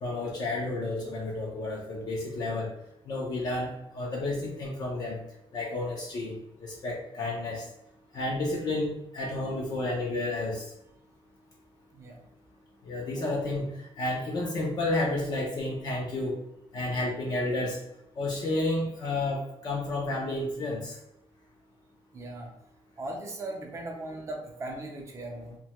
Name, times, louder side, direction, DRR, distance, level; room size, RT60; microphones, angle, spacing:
voice 1, 0.0-2.7 3.1-5.2 5.5-7.6 8.1-10.6 12.8-13.7 14.0-16.4 16.7-17.8 18.2-21.0, left 2 dB, 40° left, -3 dB, 0.5 m, -31 dB
voice 2, 11.9-12.3 13.1-13.2 22.1-22.5 23.0-25.6, right 1 dB, 30° right, 1 dB, 0.5 m, -38 dB
2.7 x 2.2 x 2.9 m, 0.83 s
cardioid pair, 170°, 10 cm